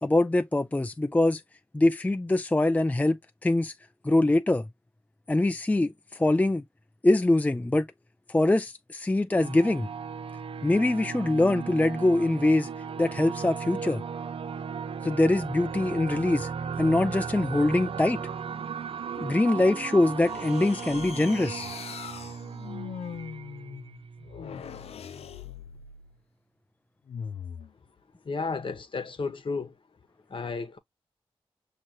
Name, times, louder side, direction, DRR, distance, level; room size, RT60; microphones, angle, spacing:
voice 1, 0.0-1.4 1.7-3.7 4.0-4.7 5.3-6.6 7.0-7.9 8.3-9.9 10.6-12.7 13.0-14.0 15.0-16.5 16.8-18.2 19.2-21.7, left 2 dB, 15° left, 0.4 m, -23 dB
sound 1, 9.3-24.6, right 6 dB, 65° right, 0.4 m, -36 dB
sound 2, 20.2-26.2 27.1-27.7, left 7 dB, 90° left, 0.5 m, -41 dB
voice 2, 28.3-29.7 30.3-30.8, left 4 dB, 55° left, 1.0 m, -32 dB
6.1 x 3.0 x 2.8 m
cardioid pair, 50°, 10 cm